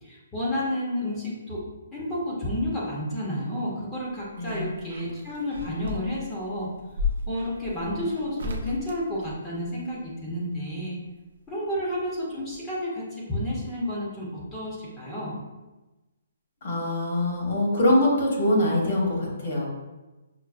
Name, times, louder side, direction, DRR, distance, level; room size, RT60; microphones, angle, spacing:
voice 1, 0.0-1.6 1.9-6.7 7.3-11.0 11.5-15.4, left 1 dB, 15° left, -6 dB, 0.7 m, -31 dB
sound 1, 3.9-9.9 11.4-12.2 12.5-12.6, left 4 dB, 65° right, 0.5 m, -35 dB
voice 2, 16.6-19.7, left 1 dB, 50° left, -3 dB, 1.3 m, -23 dB
5.9 x 2.0 x 2.4 m, 1.1 s
hypercardioid pair, 160°, 0 cm